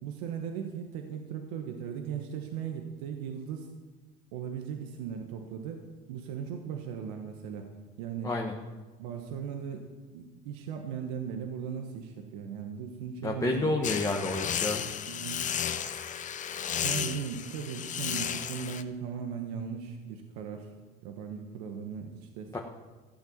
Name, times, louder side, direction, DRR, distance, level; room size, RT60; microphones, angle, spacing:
voice 1, 0.0-3.7 4.3-7.7 8.0-8.3 9.0-13.7 15.0-15.5 16.8-20.7 21.0-22.6, right 7 dB, 90° right, 4 dB, 1.4 m, -38 dB
voice 2, 8.2-8.5 13.2-14.8 22.5-22.6, left 2 dB, 15° left, 0 dB, 1.5 m, -29 dB
sound 1, 13.8-18.8, left 9 dB, 40° left, 0.9 m, -33 dB
15.0 x 8.2 x 7.3 m, 1.3 s
supercardioid pair, 95°, 19 cm